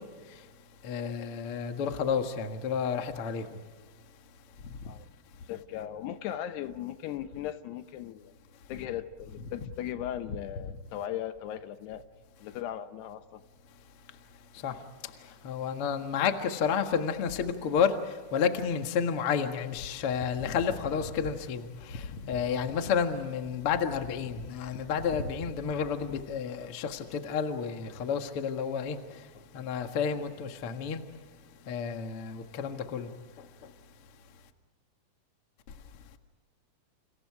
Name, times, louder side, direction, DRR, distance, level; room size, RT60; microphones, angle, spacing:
voice 1, 0.8-3.4 14.6-14.7 15.4-17.9 18.3-29.0 29.5-31.0 31.7-33.1, left 7 dB, 55° left, 1.5 m, -30 dB
voice 2, 5.5-8.3 8.7-12.0 12.4-13.4, left 11 dB, 75° left, 2.8 m, -38 dB
30.0 x 29.5 x 4.9 m
omnidirectional pair, 5.1 m